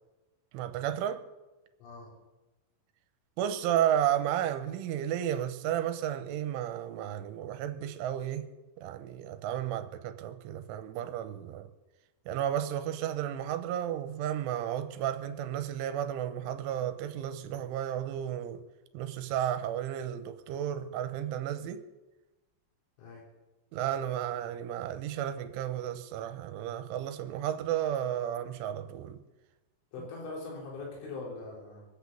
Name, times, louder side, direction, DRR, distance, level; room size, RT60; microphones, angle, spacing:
voice 1, 0.5-1.2 3.4-8.5 8.8-11.7 12.3-18.6 18.9-21.8 23.7-29.2, right 10 dB, 85° right, 3.3 m, -33 dB
voice 2, 1.8-2.1 23.0-23.2 29.9-31.9, left 3 dB, 75° left, 6.2 m, -41 dB
23.5 x 8.5 x 6.9 m
omnidirectional pair, 5.6 m